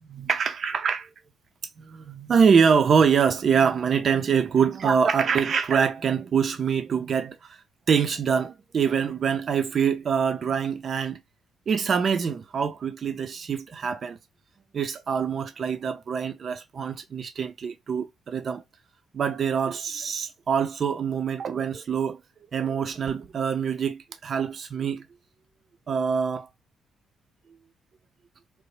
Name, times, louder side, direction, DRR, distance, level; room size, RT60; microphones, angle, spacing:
voice 1, 0.0-1.1 1.8-7.6 7.9-11.2 11.7-14.2 14.7-18.6 19.1-22.2 22.5-25.0 25.9-26.5, right 6 dB, 50° right, 0.4 m, -24 dB
2.8 x 2.0 x 3.0 m
cardioid pair, 90°, 0 cm